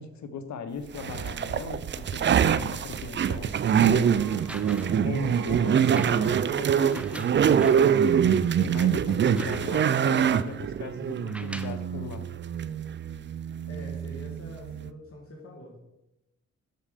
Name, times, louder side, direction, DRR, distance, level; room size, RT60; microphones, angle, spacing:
voice 1, 0.0-4.2 5.0-8.0 8.6-12.3, left 5 dB, 70° left, 9 dB, 0.9 m, -39 dB
sound 1, 0.9-14.9, right 8 dB, 40° right, 0.4 m, -25 dB
sound 2, 1.6-6.5, right 4 dB, 65° right, 2.4 m, -50 dB
sound 3, 4.4-5.1 5.8-7.9 8.5-8.6 8.9-10.0 11.1-11.9 12.8-12.9, right 1 dB, 5° right, 0.7 m, -44 dB
voice 2, 13.7-15.8, equal, 50° left, -1 dB, 1.7 m, -44 dB
6.5 x 5.3 x 5.0 m, 0.91 s
cardioid pair, 65°, 29 cm